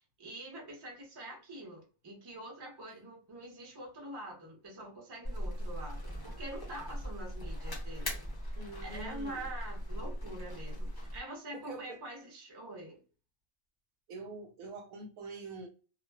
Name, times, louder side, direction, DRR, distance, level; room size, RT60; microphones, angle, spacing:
voice 1, 0.0-13.0, right 1 dB, 25° right, 0.6 m, -45 dB
sound 1, 5.2-11.2, equal, 30° left, 0.4 m, -39 dB
voice 2, 8.6-9.5 11.5-12.0 14.1-15.7, right 3 dB, 70° right, 0.9 m, -45 dB
2.3 x 2.3 x 2.2 m
omnidirectional pair, 1.6 m